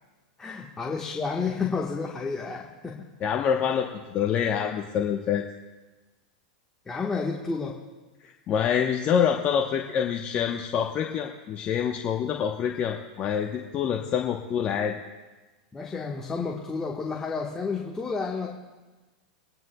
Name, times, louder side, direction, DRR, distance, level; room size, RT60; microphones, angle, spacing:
voice 1, 0.4-3.1 6.8-7.8 15.7-18.5, left 4 dB, 15° left, -2 dB, 1.4 m, -31 dB
voice 2, 3.2-5.4 8.2-14.9, left 8 dB, 35° left, 1 dB, 1.0 m, -26 dB
26.5 x 9.4 x 2.3 m, 1.2 s
hypercardioid pair, 110°, 4 cm